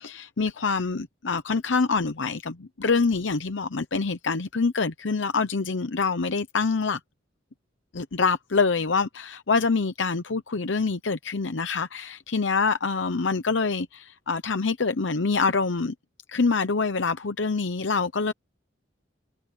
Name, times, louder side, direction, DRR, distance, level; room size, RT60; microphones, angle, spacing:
voice 1, 0.0-7.0 7.9-15.9 16.3-18.3, left 4 dB, 85° left, 0.8 m, -25 dB
head